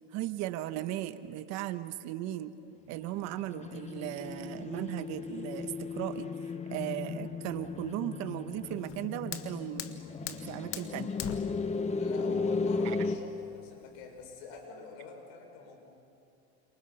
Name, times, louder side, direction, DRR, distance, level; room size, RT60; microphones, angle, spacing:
voice 1, 0.1-2.5 2.9-6.3 6.7-11.1 12.8-13.0, right 13 dB, 60° right, 11 dB, 1.3 m, -37 dB
sound 1, 3.0-13.2, left 4 dB, 20° left, 1.2 m, -35 dB
Fire, 8.7-14.7, left 9 dB, 45° left, 1.7 m, -44 dB
voice 2, 12.0-15.8, left 4 dB, 75° left, 2 dB, 6.3 m, -45 dB
29.5 x 28.0 x 5.8 m, 2.6 s
supercardioid pair, 120°, 31 cm